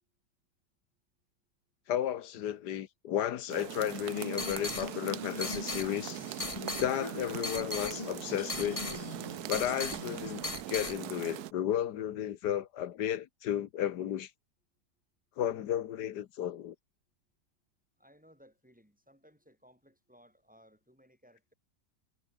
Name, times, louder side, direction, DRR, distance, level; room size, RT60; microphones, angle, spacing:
voice 1, 1.9-6.2 6.8-8.8 9.5-14.3 15.4-16.7, left 10 dB, 75° left, 1.5 m, -33 dB
sound 1, 3.5-11.5, right 14 dB, 70° right, 1.1 m, -41 dB
sound 2, 3.9-11.0, left 3 dB, 20° left, 1.6 m, -39 dB
voice 2, 18.0-21.5, equal, 5° right, 6.8 m, -61 dB
omnidirectional pair, 1.8 m